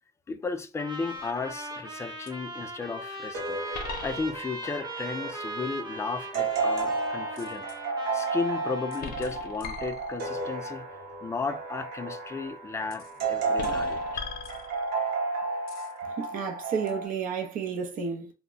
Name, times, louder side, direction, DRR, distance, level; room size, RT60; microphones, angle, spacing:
voice 1, 0.3-3.6 4.0-7.7 8.1-14.3, left 4 dB, 15° left, 0.3 m, -34 dB
Trumpet, 0.8-9.3, right 1 dB, 25° right, 0.9 m, -39 dB
sound 1, 1.1-1.6 2.3-2.4 3.7-4.6 7.3-7.8 8.9-10.5 12.9-13.2 13.6-15.1 15.7-16.0 16.9-17.0, left 5 dB, 60° left, 0.6 m, -40 dB
sound 2, 3.3-17.1, right 3 dB, 85° right, 0.8 m, -33 dB
voice 2, 16.2-18.3, right 6 dB, 55° right, 0.6 m, -31 dB
2.1 x 2.0 x 3.7 m
cardioid pair, 110°, 17 cm